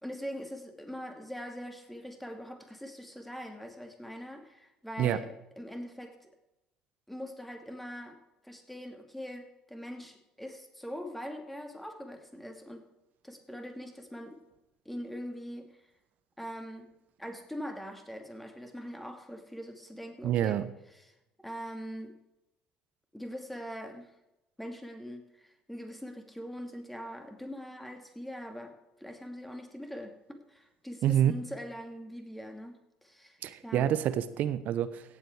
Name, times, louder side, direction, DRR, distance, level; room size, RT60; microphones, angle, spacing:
voice 1, 0.0-6.3 7.1-8.2 8.4-12.9 13.2-14.4 14.8-15.8 16.4-16.9 17.2-21.1 21.4-22.2 23.1-24.1 24.6-32.7 33.0-34.0, equal, 5° left, 4 dB, 2.6 m, -42 dB
voice 2, 20.2-20.6 31.0-31.3 33.4-35.0, right 11 dB, 55° right, 14 dB, 0.8 m, -27 dB
17.0 x 7.7 x 4.8 m, 0.93 s
hypercardioid pair, 60°, 3 cm